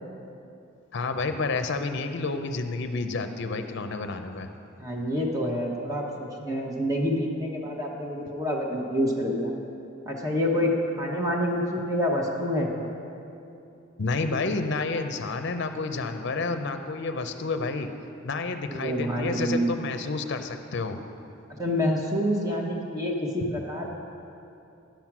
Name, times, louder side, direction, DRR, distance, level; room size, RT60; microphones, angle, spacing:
voice 1, 0.9-4.5 14.0-17.9 18.2-21.0 23.4-23.5, left 3 dB, 60° left, 8 dB, 0.6 m, -30 dB
voice 2, 4.8-9.5 10.1-10.7 11.0-12.8 18.7-19.8 21.6-23.9, equal, 15° right, -2 dB, 1.0 m, -27 dB
10.5 x 7.4 x 6.0 m, 2.7 s
head